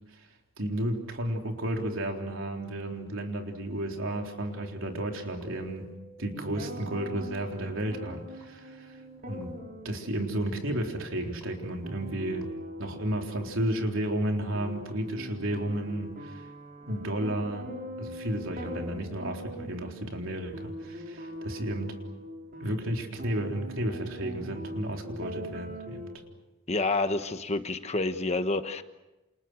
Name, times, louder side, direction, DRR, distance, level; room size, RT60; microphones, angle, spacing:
voice 1, 0.6-5.9 6.2-9.0 9.3-9.6 9.8-12.5 12.8-16.5 16.9-17.7 18.0-22.0 22.6-26.1, right 1 dB, 65° right, 2 dB, 3.9 m, -32 dB
sound 1, 4.0-7.4 8.4-8.5 9.4-9.5 10.4-10.5 11.4-11.5 12.4-12.5 13.4-13.5, right 2 dB, 15° left, 6.7 m, -52 dB
sound 2, 6.3-26.2, equal, 40° right, 4.4 m, -42 dB
voice 2, 26.7-28.8, left 2 dB, 30° left, 9 dB, 1.2 m, -28 dB
29.0 x 28.0 x 6.3 m, 1.0 s
head